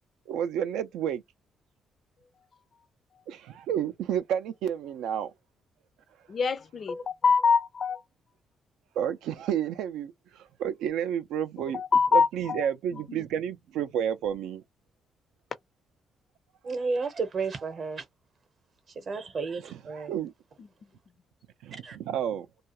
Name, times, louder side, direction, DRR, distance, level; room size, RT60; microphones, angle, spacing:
voice 1, 0.3-1.2 3.3-5.3 9.0-11.8 12.1-14.6 19.6-20.3 21.6-22.5, right 9 dB, 85° right, 0.3 m, -31 dB
voice 2, 6.3-8.0 11.7-12.7 12.9-13.2 20.6-20.7, left 5 dB, 50° left, 0.4 m, -25 dB
voice 3, 16.6-18.0 19.1-20.1 21.8-22.0, right 4 dB, 50° right, 0.7 m, -32 dB
2.3 x 2.3 x 2.8 m
cardioid pair, 90°, 0 cm